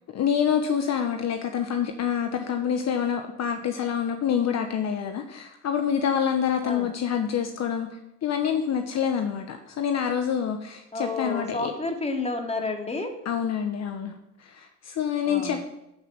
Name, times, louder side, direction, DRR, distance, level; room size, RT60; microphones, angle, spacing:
voice 1, 0.1-11.7 13.2-14.1 14.4-15.6, left 8 dB, 50° left, 6 dB, 1.3 m, -27 dB
voice 2, 10.9-13.1 15.2-15.6, left 3 dB, 20° left, 3 dB, 2.6 m, -30 dB
13.5 x 6.0 x 7.4 m, 0.89 s
supercardioid pair, 75°, 34 cm